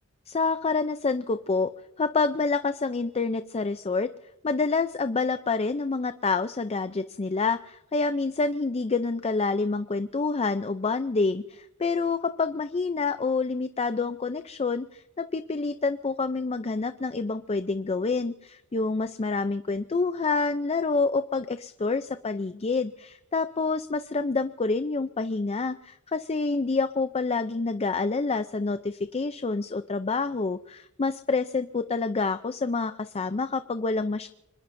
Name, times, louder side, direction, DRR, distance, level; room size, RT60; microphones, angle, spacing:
voice 1, 0.3-1.7 2.0-4.1 4.4-34.3, left 4 dB, 30° left, 10 dB, 0.5 m, -27 dB
26.0 x 21.0 x 2.6 m, 0.92 s
head